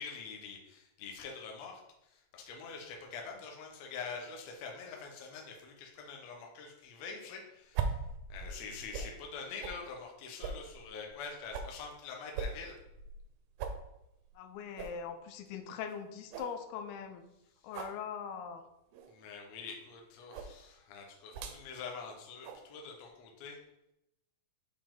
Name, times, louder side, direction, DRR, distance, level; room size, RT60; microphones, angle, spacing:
voice 1, 0.0-1.8 2.1-7.9 8.3-12.8 19.1-23.6, left 5 dB, 65° left, 1 dB, 1.8 m, -45 dB
sound 1, 7.7-9.2 9.6-9.8 10.4-11.8 12.4-13.3 13.6-13.8 14.2-14.3 14.8-15.0 15.5-15.6 15.9-16.0 16.3-16.6 17.7-18.0 18.9-19.2 20.3-20.6 21.3-21.6 22.4-22.6, right 5 dB, 80° right, 2.5 m, -39 dB
voice 2, 14.4-17.2 17.6-18.6, left 7 dB, 90° left, 8 dB, 2.6 m, -41 dB
6.8 x 5.2 x 3.7 m, 0.88 s
omnidirectional pair, 4.4 m